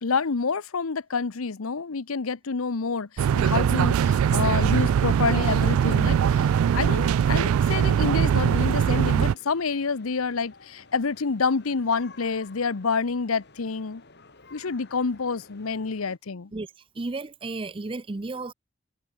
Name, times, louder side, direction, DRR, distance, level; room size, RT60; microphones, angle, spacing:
voice 1, 0.0-14.0 14.5-16.5, left 4 dB, 85° left, 0.8 m, -28 dB
sound 1, 3.2-9.3, right 8 dB, 85° right, 0.3 m, -21 dB
sound 2, 3.6-16.2, left 3 dB, 55° left, 5.3 m, -53 dB
voice 2, 16.9-18.5, right 3 dB, 25° right, 0.5 m, -33 dB
head